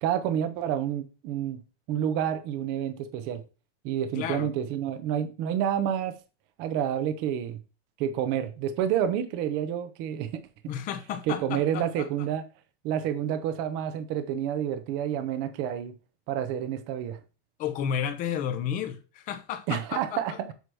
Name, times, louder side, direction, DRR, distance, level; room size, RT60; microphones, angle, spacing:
voice 1, 0.0-1.6 1.9-3.4 3.8-6.1 6.6-7.6 8.0-10.4 11.3-12.4 12.8-15.9 16.3-17.2 19.7-20.5, right 9 dB, 30° right, 0.7 m, -29 dB
voice 2, 4.2-4.5 10.7-12.1 17.6-20.2, left 8 dB, 25° left, 0.6 m, -32 dB
8.0 x 2.8 x 6.1 m
supercardioid pair, 175°, 36 cm